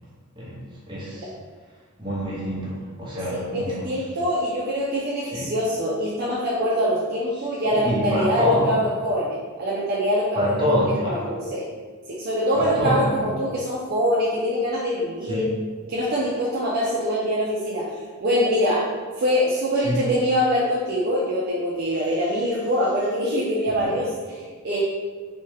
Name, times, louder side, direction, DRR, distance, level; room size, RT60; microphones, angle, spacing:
voice 1, 0.4-1.3 2.0-3.9 5.3-5.5 7.7-8.7 10.3-11.3 12.5-13.2 15.3-15.4 19.8-20.0 23.8-23.9, left 1 dB, 20° right, -8 dB, 0.9 m, -26 dB
voice 2, 3.3-10.8 11.1-11.7 12.1-15.4 15.9-17.9 18.2-18.9 19.2-24.8, equal, 50° right, -5 dB, 0.4 m, -24 dB
3.1 x 2.2 x 3.1 m, 1.5 s
head